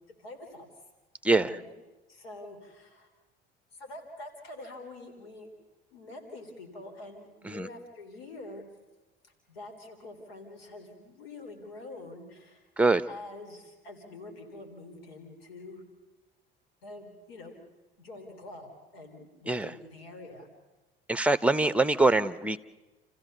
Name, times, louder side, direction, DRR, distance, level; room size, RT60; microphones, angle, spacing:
voice 1, 0.2-0.7 1.3-1.7 2.1-3.1 3.7-5.5 5.9-8.6 9.2-12.7 13.1-15.8 16.8-17.6 18.0-20.5, left 2 dB, 85° left, 4 dB, 3.9 m, -46 dB
voice 2, 21.1-22.6, right 2 dB, 5° right, 13 dB, 1.0 m, -24 dB
29.5 x 15.0 x 6.8 m, 1.1 s
hypercardioid pair, 60°, 29 cm